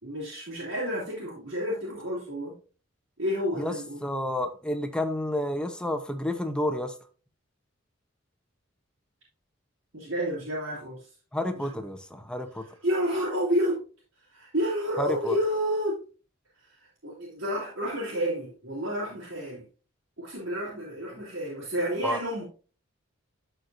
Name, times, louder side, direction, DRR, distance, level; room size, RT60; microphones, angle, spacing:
voice 1, 0.0-2.5 3.2-4.0 9.9-11.1 12.8-13.8 14.3-16.0 16.8-19.7 20.2-22.4, equal, 65° right, 2.9 m, -30 dB
voice 2, 4.0-7.0 11.3-12.7 15.0-15.4 22.0-22.2, left 1 dB, 5° left, 0.8 m, -30 dB
13.0 x 4.5 x 2.7 m
head